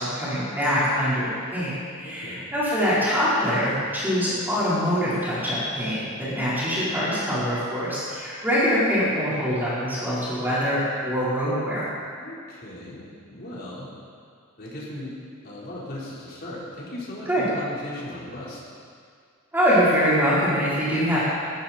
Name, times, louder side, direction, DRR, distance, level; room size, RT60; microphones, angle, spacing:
voice 1, 0.0-11.9 17.3-17.4 19.5-21.2, equal, 10° right, -10 dB, 4.4 m, -24 dB
voice 2, 2.0-2.4 12.2-13.9 14.6-15.1 15.4-18.6, left 1 dB, 50° left, -6 dB, 4.4 m, -37 dB
18.5 x 14.0 x 4.4 m, 2.2 s
head